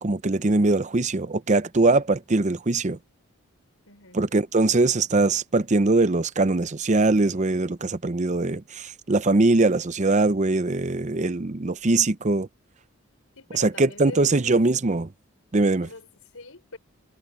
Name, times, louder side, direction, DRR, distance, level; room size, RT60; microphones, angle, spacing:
voice 1, 0.0-3.0 4.1-12.5 13.5-15.1 15.5-15.9, right 2 dB, 35° right, 0.7 m, -22 dB
voice 2, 3.9-4.2 13.4-14.5 15.8-16.8, left 2 dB, 75° left, 5.3 m, -43 dB
head